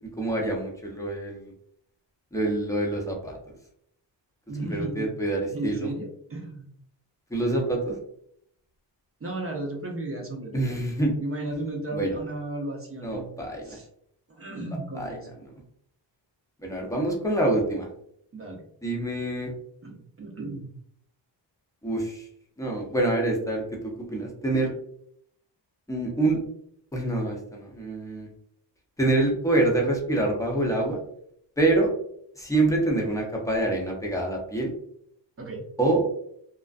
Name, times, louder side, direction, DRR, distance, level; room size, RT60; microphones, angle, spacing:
voice 1, 0.2-1.5 2.3-3.4 4.7-5.9 7.3-8.0 10.5-11.2 11.9-12.1 13.0-13.8 15.0-15.1 16.6-17.9 18.8-19.5 21.8-22.3 22.6-24.7 25.9-26.4 26.9-28.3 29.0-31.0 31.6-31.9 32.4-34.7 35.8-36.0, right 2 dB, 5° left, -1 dB, 0.7 m, -26 dB
voice 2, 4.5-5.1 5.5-6.7 9.2-10.9 11.2-13.3 13.6-13.9 14.3-15.4 18.3-18.6 19.8-20.7 35.4-35.7, right 2 dB, 30° right, 0 dB, 0.7 m, -34 dB
2.4 x 2.1 x 2.4 m, 0.69 s
cardioid pair, 75°, 45 cm